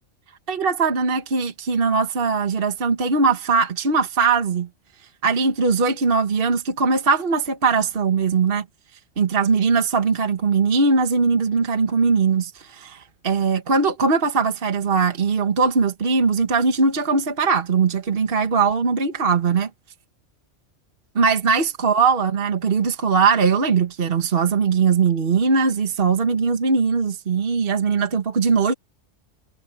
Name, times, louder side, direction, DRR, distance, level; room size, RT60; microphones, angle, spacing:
voice 1, 0.5-4.7 5.2-8.6 9.2-19.7 21.1-28.7, right 5 dB, 50° right, 1.5 m, -20 dB
omnidirectional pair, 1.2 m